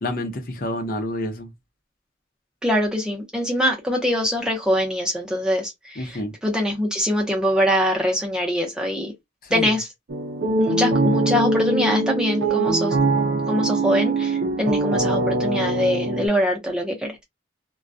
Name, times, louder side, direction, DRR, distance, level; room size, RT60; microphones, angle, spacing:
voice 1, 0.0-1.5 6.0-6.3 9.4-9.7, left 1 dB, 45° left, 0.7 m, -28 dB
voice 2, 2.6-9.1 9.5-9.9 10.6-13.0 13.5-17.2, equal, 5° right, 0.7 m, -23 dB
sound 1, 10.1-16.3, right 2 dB, 60° right, 0.5 m, -22 dB
2.3 x 2.2 x 2.5 m
head